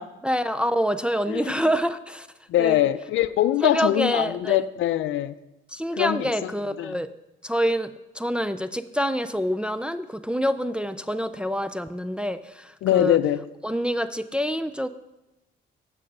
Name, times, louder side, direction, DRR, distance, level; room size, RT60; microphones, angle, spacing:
voice 1, 0.2-2.3 2.6-2.8 3.6-4.6 5.7-7.1 7.4-13.2 13.6-14.9, equal, 5° right, 0.4 m, -26 dB
voice 2, 2.5-5.4 5.9-6.5 6.8-7.0 12.8-13.4, left 13 dB, 75° left, 0.5 m, -23 dB
9.1 x 7.5 x 5.4 m
cardioid pair, 90°, 20 cm